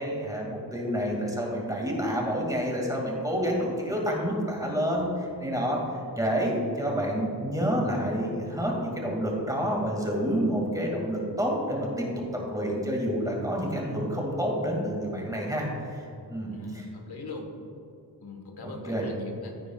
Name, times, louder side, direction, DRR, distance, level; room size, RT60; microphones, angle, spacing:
voice 1, 0.0-12.1 12.3-16.8 18.6-19.1, equal, 10° right, -2 dB, 2.3 m, -29 dB
voice 2, 16.5-17.5 18.2-19.6, left 2 dB, 75° left, 2 dB, 1.5 m, -40 dB
15.5 x 9.1 x 2.4 m, 2.7 s
wide cardioid pair, 135°, 39 cm